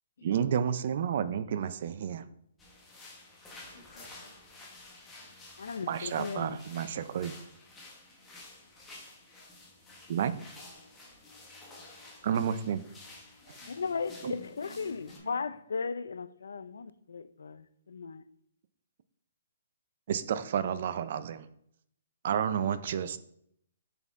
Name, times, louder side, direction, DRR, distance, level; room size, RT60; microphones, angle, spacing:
voice 1, 0.2-2.3 5.9-7.3 10.1-10.3 12.2-12.8 14.2-14.4 20.1-21.5 22.2-23.2, right 8 dB, 40° right, 0.4 m, -30 dB
sound 1, 2.6-15.2, left 2 dB, 10° left, 0.9 m, -51 dB
voice 2, 3.7-4.4 5.2-5.4 8.2-10.0 11.8-12.3 13.3-15.5, left 1 dB, 65° left, 1.8 m, -57 dB
voice 3, 5.6-6.6 13.7-18.2, left 5 dB, 85° left, 0.4 m, -36 dB
6.7 x 4.2 x 3.6 m
hypercardioid pair, 175°, 0 cm